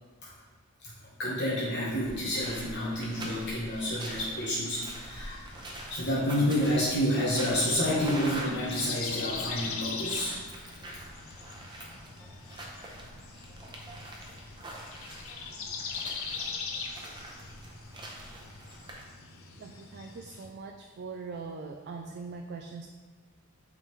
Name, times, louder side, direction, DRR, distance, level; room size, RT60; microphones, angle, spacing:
voice 1, 1.2-5.4 5.9-10.4, equal, 55° left, -7 dB, 1.1 m, -29 dB
sound 1, 2.0-19.0, right 1 dB, 20° right, 0.8 m, -44 dB
sound 2, 5.2-20.5, left 5 dB, 70° left, 0.7 m, -42 dB
voice 2, 19.6-22.9, right 4 dB, 50° right, 3 dB, 0.4 m, -41 dB
8.4 x 3.7 x 3.2 m, 1.5 s
head